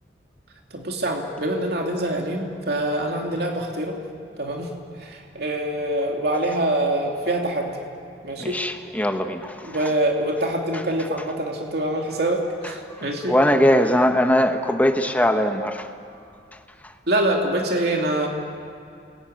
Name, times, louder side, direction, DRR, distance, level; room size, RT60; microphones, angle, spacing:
voice 1, 0.7-4.0 4.4-4.7 5.0-7.7 8.2-8.6 9.6-13.4 17.1-18.3, right 1 dB, 65° right, 1 dB, 2.8 m, -25 dB
voice 2, 8.4-9.8 13.3-15.9, equal, 10° left, 6 dB, 1.3 m, -20 dB
29.0 x 21.5 x 9.5 m, 2.5 s
head